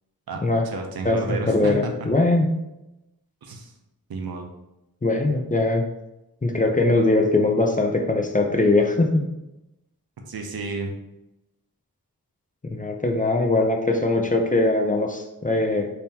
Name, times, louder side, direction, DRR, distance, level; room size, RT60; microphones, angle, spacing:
voice 1, 0.3-2.1 3.4-3.7 4.1-4.5 10.3-11.0, right 3 dB, 75° right, 3 dB, 0.6 m, -31 dB
voice 2, 1.5-2.5 5.0-5.8 6.4-9.2 12.7-15.9, left 2 dB, 20° left, 3 dB, 0.5 m, -21 dB
3.5 x 2.8 x 2.8 m, 0.92 s
cardioid pair, 45°, 36 cm